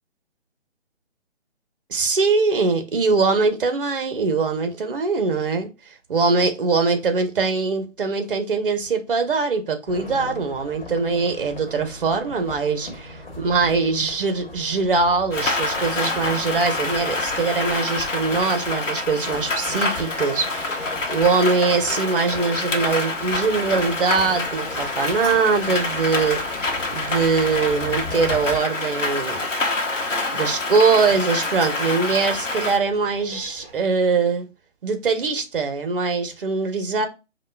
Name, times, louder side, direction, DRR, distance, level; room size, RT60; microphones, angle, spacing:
voice 1, 1.9-5.7 6.1-29.4 30.3-34.5 34.8-37.1, right 4 dB, 45° right, 0.7 m, -22 dB
sound 1, 9.9-28.6, left 2 dB, 40° left, 1.2 m, -39 dB
Rain, 15.3-32.8, left 2 dB, 80° left, 1.0 m, -27 dB
sound 2, 23.1-33.8, right 3 dB, 10° right, 1.5 m, -43 dB
4.8 x 2.2 x 2.2 m
figure-of-eight pair, 150°, 37 cm